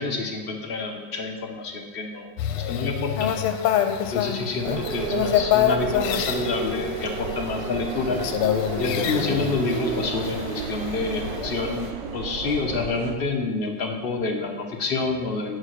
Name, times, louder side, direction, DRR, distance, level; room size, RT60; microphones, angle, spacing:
voice 1, 0.0-3.3 4.1-8.2 8.8-15.6, left 3 dB, 45° left, 1 dB, 0.7 m, -28 dB
sound 1, 2.4-11.9, left 10 dB, 85° left, 1.5 m, -27 dB
sound 2, 4.6-13.2, right 5 dB, 65° right, 1.2 m, -32 dB
8.4 x 5.1 x 6.5 m, 1.3 s
omnidirectional pair, 2.4 m